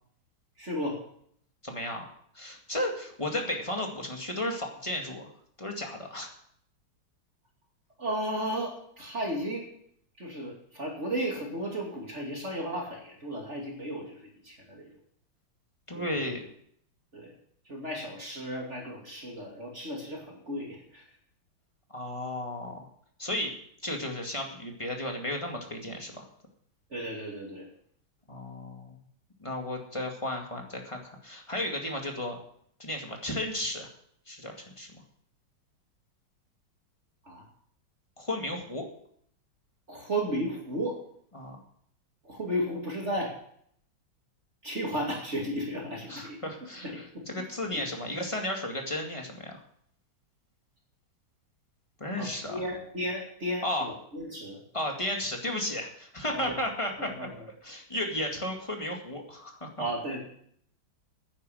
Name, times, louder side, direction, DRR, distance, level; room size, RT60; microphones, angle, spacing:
voice 1, 0.6-1.0 8.0-9.7 10.2-14.9 15.9-16.3 17.1-17.3 17.7-21.0 26.9-27.7 37.2-37.4 39.9-41.0 42.2-43.3 44.6-46.4 46.8-47.3 47.7-47.9 52.2-54.6 56.3-56.5 57.0-57.4 59.8-60.2, equal, 35° right, -1 dB, 2.8 m, -34 dB
voice 2, 1.6-2.1 2.3-5.3 5.6-6.3 15.9-16.4 21.9-22.9 23.2-23.5 23.8-26.3 28.3-29.0 29.4-32.4 32.8-33.9 34.3-34.9 38.2-38.9 41.3-41.6 46.1-49.6 52.0-52.6 53.6-53.9 54.7-57.1 57.6-59.7, left 1 dB, 15° left, 2 dB, 2.0 m, -34 dB
10.0 x 9.9 x 7.8 m, 0.66 s
omnidirectional pair, 2.2 m